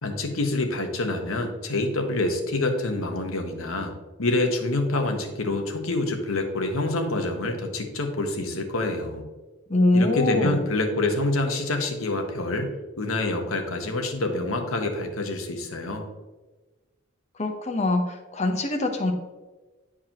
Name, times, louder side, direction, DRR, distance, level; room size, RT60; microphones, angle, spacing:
voice 1, 0.0-3.9 4.2-9.2 9.9-12.7 13.0-16.0, left 2 dB, 85° left, 4 dB, 1.1 m, -26 dB
voice 2, 9.7-10.6 17.4-19.1, left 2 dB, 35° left, 4 dB, 0.8 m, -23 dB
10.0 x 4.8 x 2.9 m, 1.2 s
head